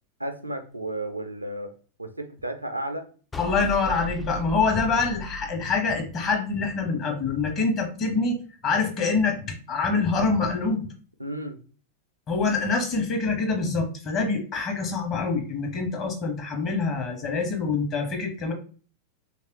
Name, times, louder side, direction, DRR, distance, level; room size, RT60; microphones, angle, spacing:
voice 1, 0.2-1.7 2.0-3.1 11.2-11.6, right 1 dB, 85° right, 8 dB, 0.4 m, -33 dB
sound 1, 3.3-6.6, right 1 dB, 15° left, 0.3 m, -37 dB
voice 2, 3.4-10.8 12.3-18.5, left 4 dB, 35° left, 3 dB, 1.0 m, -25 dB
3.2 x 3.2 x 3.0 m, 0.39 s
figure-of-eight pair, 90°, 0 cm